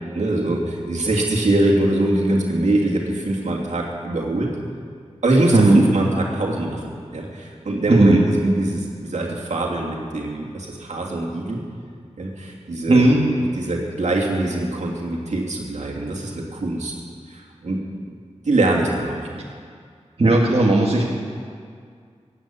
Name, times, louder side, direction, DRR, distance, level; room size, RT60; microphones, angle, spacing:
voice 1, 0.1-4.5 5.2-11.6 12.2-13.0 13.4-16.9 17.3-17.8 18.4-19.3, right 2 dB, 80° right, -3 dB, 2.9 m, -23 dB
voice 2, 7.9-8.2 12.9-13.2 19.4-19.5 20.2-21.1, right 2 dB, 55° right, -3 dB, 2.0 m, -15 dB
16.5 x 9.7 x 8.7 m, 2.1 s
wide cardioid pair, 75°, 12 cm